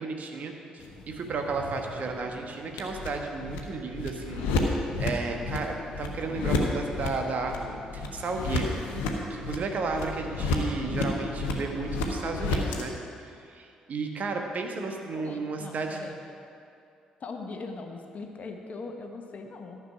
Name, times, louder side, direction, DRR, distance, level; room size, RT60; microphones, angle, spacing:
voice 1, 0.0-4.7 5.0-8.8 9.3-16.1, right 4 dB, 45° right, 3 dB, 1.2 m, -33 dB
sound 1, 0.8-12.8, left 2 dB, 65° left, 1.0 m, -32 dB
voice 2, 15.2-16.2 17.2-19.8, left 3 dB, 40° left, 4 dB, 1.1 m, -40 dB
13.5 x 6.0 x 5.9 m, 2.6 s
figure-of-eight pair, 45°, 4 cm